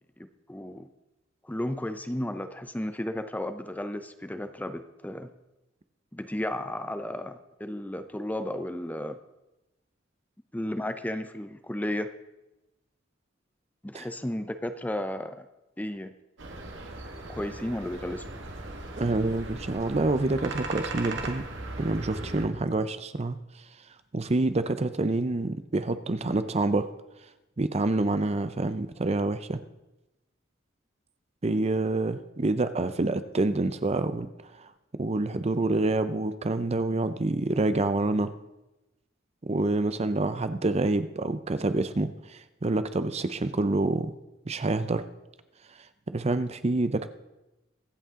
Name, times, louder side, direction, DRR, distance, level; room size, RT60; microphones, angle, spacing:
voice 1, 0.2-0.9 1.4-5.3 6.1-9.2 10.5-12.1 13.8-15.5 15.8-16.1 17.3-18.3, left 1 dB, 10° left, 10 dB, 0.6 m, -33 dB
sound 1, 16.4-22.5, right 2 dB, 70° right, 1.9 m, -38 dB
voice 2, 19.0-21.5 21.8-23.4 24.1-26.9 27.6-29.6 31.4-34.3 34.6-38.3 39.4-44.1 44.5-45.0 46.1-47.1, right 2 dB, 35° right, 11 dB, 0.6 m, -27 dB
23.5 x 8.3 x 3.7 m, 0.98 s
head